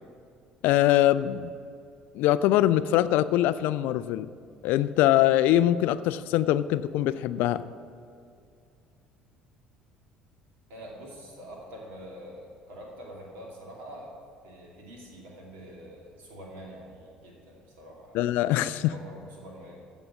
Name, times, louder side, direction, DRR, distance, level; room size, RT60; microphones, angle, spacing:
voice 1, 0.6-1.5 2.1-4.3 4.6-7.6 18.1-18.9, left 13 dB, 55° left, 15 dB, 0.3 m, -23 dB
voice 2, 10.7-14.1 14.4-18.2 18.8-19.8, equal, 60° right, -2 dB, 2.6 m, -45 dB
15.5 x 5.4 x 6.1 m, 2.5 s
figure-of-eight pair, 55°, 4 cm